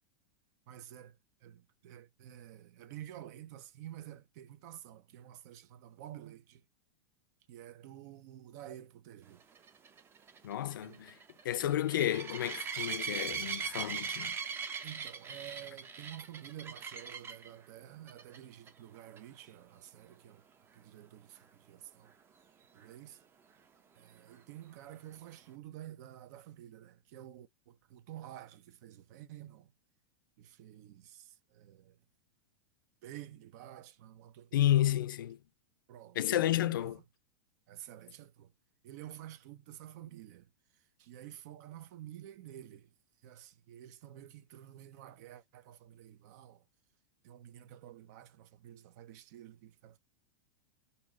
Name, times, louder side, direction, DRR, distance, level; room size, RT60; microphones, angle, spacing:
voice 1, 0.7-1.2 1.4-6.6 7.5-9.4 10.8-11.0 14.8-20.4 20.7-22.1 22.7-23.2 24.0-29.7 30.4-31.9 33.0-34.9 35.9-36.9 37.7-38.5 38.8-40.5 41.0-42.9 43.2-46.6 47.2-50.0, right 12 dB, 55° right, 0.7 m, -50 dB
sound 1, 9.5-17.5 18.1-18.4 18.7-18.8 19.2-19.3 22.8-22.9, right 6 dB, 20° right, 0.7 m, -40 dB
voice 2, 10.4-11.2 11.4-14.3 34.5-35.4 36.2-37.0, left 12 dB, 85° left, 0.4 m, -31 dB
3.0 x 2.7 x 3.8 m
hypercardioid pair, 130°, 11 cm